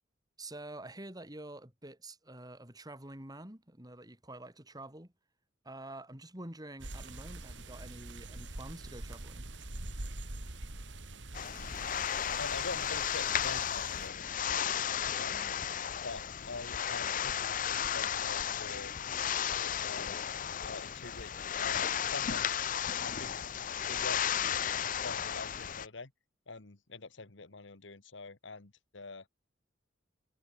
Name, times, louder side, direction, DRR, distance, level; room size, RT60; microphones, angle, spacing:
voice 1, 0.4-5.1 5.6-9.5, right 1 dB, 20° right, 4.3 m, -47 dB
sound 1, 6.8-14.1, right 2 dB, 70° right, 2.3 m, -44 dB
sound 2, 11.3-25.9, left 9 dB, 45° left, 0.6 m, -34 dB
voice 2, 12.4-14.8 15.2-15.5 16.0-18.9 19.4-20.2 20.6-22.6 23.0-23.5 23.8-26.1 26.5-29.3, left 3 dB, 75° left, 1.6 m, -45 dB
head